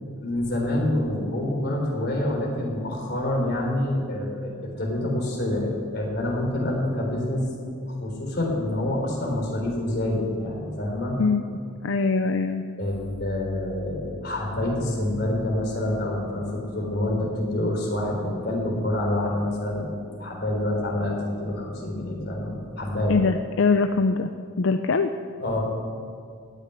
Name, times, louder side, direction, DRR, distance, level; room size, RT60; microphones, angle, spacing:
voice 1, 0.2-4.5 4.8-7.4 7.7-11.2 12.8-23.2 25.4-25.6, left 1 dB, 50° left, -1 dB, 3.7 m, -27 dB
voice 2, 11.8-12.6 23.1-24.3 24.6-25.1, left 4 dB, 70° left, 8 dB, 0.5 m, -22 dB
16.0 x 6.7 x 10.0 m, 2.2 s
head